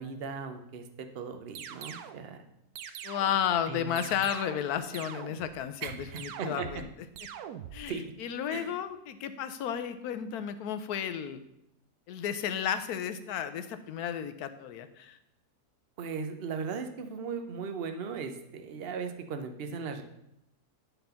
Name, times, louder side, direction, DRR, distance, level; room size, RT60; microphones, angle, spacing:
voice 1, 0.0-2.4 3.7-4.1 5.8-6.7 7.9-8.0 8.5-8.7 16.0-20.0, right 5 dB, 50° right, 7 dB, 0.8 m, -38 dB
sound 1, 1.6-2.2 2.8-3.5 4.0-4.7 4.9-5.6 6.2-6.9 7.2-7.8, right 9 dB, 75° right, 1.1 m, -43 dB
voice 2, 3.0-6.9 7.7-11.4 12.1-15.2, left 9 dB, 75° left, 10 dB, 1.1 m, -33 dB
10.0 x 3.9 x 5.7 m, 0.83 s
omnidirectional pair, 1.7 m